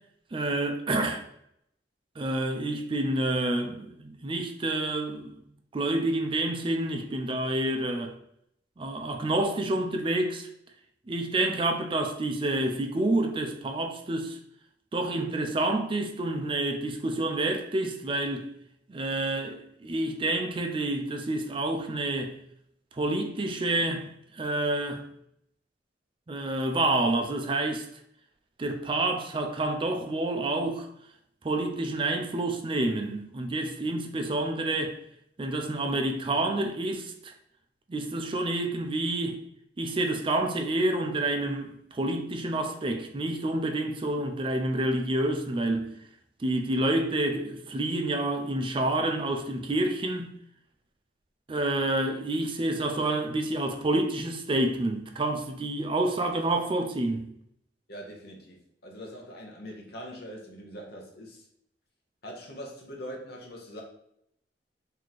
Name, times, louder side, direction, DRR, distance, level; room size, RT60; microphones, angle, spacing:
voice 1, 0.3-1.2 2.2-5.3 5.7-8.1 8.8-10.5 11.1-14.4 14.9-18.5 18.9-22.3 22.9-25.0 26.3-27.9 28.6-30.9 31.4-35.0 35.4-37.3 37.9-39.4 39.8-45.9 46.4-50.3 51.5-57.3, right 2 dB, 30° right, 0.4 m, -28 dB
voice 2, 57.9-61.5 62.2-63.8, equal, 60° left, 0.9 m, -42 dB
3.1 x 2.8 x 4.0 m
head